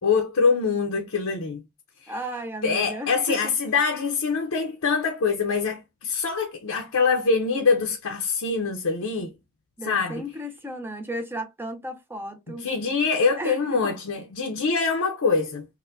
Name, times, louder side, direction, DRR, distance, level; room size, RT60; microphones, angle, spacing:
voice 1, 0.0-1.6 2.0-2.1 2.6-9.3 9.9-10.2 12.6-15.7, left 5 dB, 75° left, 0.6 m, -24 dB
voice 2, 2.1-3.6 9.8-12.7 13.4-13.9, equal, 10° right, 0.5 m, -34 dB
4.2 x 2.2 x 2.5 m
head